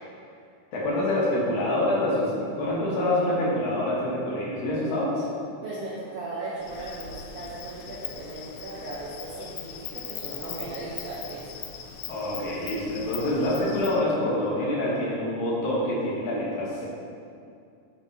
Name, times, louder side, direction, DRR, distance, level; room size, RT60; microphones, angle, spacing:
voice 1, 0.7-5.3 12.1-16.8, left 1 dB, 65° left, -5 dB, 2.5 m, -26 dB
voice 2, 5.6-11.6, right 2 dB, 75° right, -6 dB, 1.4 m, -37 dB
Insect, 6.6-14.0, left 8 dB, 90° left, 1.7 m, -40 dB
8.9 x 6.1 x 2.8 m, 2.4 s
omnidirectional pair, 3.9 m